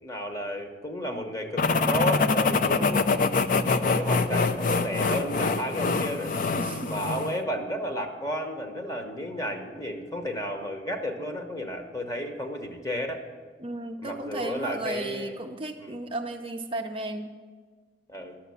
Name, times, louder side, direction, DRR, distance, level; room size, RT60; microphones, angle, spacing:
voice 1, 0.0-3.3 3.8-6.3 6.8-13.2 14.0-15.4 15.8-16.0 18.1-18.4, equal, 20° left, 4 dB, 1.0 m, -32 dB
sound 1, 1.6-7.4, left 4 dB, 50° left, 0.5 m, -25 dB
voice 2, 2.5-3.0 6.6-6.9 13.6-17.3, right 2 dB, 30° right, 3 dB, 0.5 m, -34 dB
11.5 x 7.1 x 7.1 m, 1.5 s
head